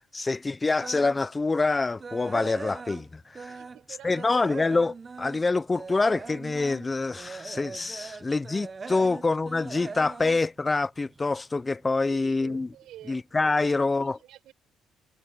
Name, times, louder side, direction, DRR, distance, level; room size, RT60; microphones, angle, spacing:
voice 1, 0.1-3.6 4.0-12.7 13.1-14.2, left 3 dB, 20° left, 0.6 m, -26 dB
sound 1, 0.8-1.3 1.7-3.9 4.1-11.4 11.7-12.0 12.5-12.6 12.9-13.0, right 4 dB, 25° right, 0.7 m, -41 dB
voice 2, 3.5-4.4 8.0-8.1 9.0-9.1 12.0-13.2 13.6-14.5, right 13 dB, 70° right, 5.7 m, -48 dB
cardioid pair, 110°, 0 cm